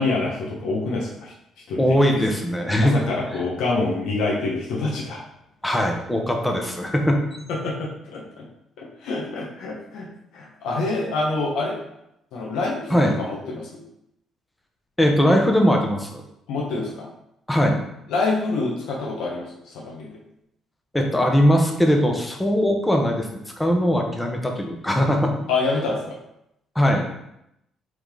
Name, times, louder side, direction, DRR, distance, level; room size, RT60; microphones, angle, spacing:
voice 1, 0.0-1.3 1.7-2.0 2.9-5.2 7.5-8.4 8.8-10.1 10.3-11.8 12.3-13.8 16.5-17.1 18.1-20.2 25.5-26.2, left 3 dB, 80° left, -3 dB, 1.4 m, -26 dB
voice 2, 1.8-2.9 5.6-7.4 12.9-13.1 15.0-16.2 17.5-17.8 20.9-23.3 23.6-25.3 26.7-27.1, equal, 5° left, 2 dB, 0.9 m, -20 dB
7.7 x 4.0 x 3.9 m, 0.81 s
cardioid pair, 170°, 0 cm